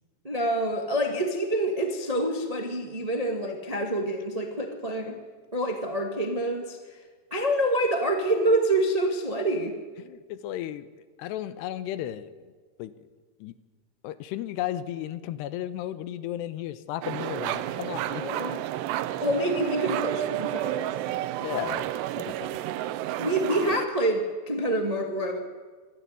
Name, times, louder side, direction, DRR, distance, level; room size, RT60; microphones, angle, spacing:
voice 1, 0.2-5.1 5.5-6.8 7.3-9.7 18.1-18.6 19.2-21.2 23.2-25.4, right 1 dB, 35° right, 3 dB, 0.6 m, -27 dB
voice 2, 10.0-10.9 11.2-12.5 12.8-12.9 13.4-13.6 14.0-18.2 21.4-22.6, left 12 dB, 85° left, 14 dB, 3.0 m, -34 dB
sound 1, 17.0-23.9, right 13 dB, 85° right, 2.9 m, -31 dB
26.0 x 13.0 x 9.7 m, 1.5 s
omnidirectional pair, 4.8 m